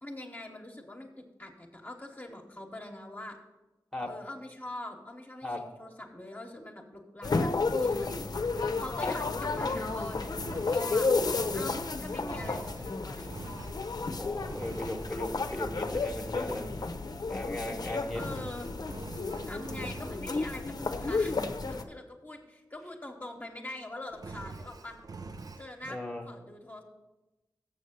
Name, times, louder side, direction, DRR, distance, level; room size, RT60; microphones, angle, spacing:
voice 1, 0.0-3.4 4.1-11.1 11.5-13.4 14.6-14.7 18.1-18.7 19.5-25.0 25.6-26.0 26.3-26.8, left 1 dB, 25° left, 1 dB, 1.1 m, -43 dB
sound 1, 7.2-21.8, left 3 dB, 60° left, 0.7 m, -32 dB
Engine, 9.4-14.1 14.5-15.2 18.0-20.3 24.1-25.7, right 3 dB, 55° right, 0.5 m, -45 dB
voice 2, 14.1-16.7 17.3-18.2 25.9-26.2, left 1 dB, 5° left, 0 dB, 1.1 m, -36 dB
7.2 x 6.6 x 6.6 m, 1.0 s
wide cardioid pair, 90°, 7 cm